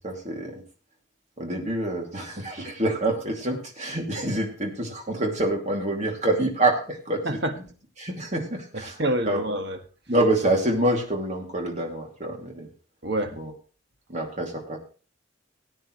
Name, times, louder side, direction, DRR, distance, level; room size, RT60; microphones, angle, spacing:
voice 1, 0.0-0.5 1.4-7.3 8.0-8.9 9.3-9.4 10.1-12.7 13.3-13.5 14.1-14.8, right 1 dB, 35° right, 1 dB, 2.6 m, -26 dB
voice 2, 7.2-7.6 8.7-9.8 13.0-13.4, right 1 dB, 55° right, 6 dB, 1.6 m, -27 dB
18.5 x 9.1 x 3.2 m, 0.38 s
head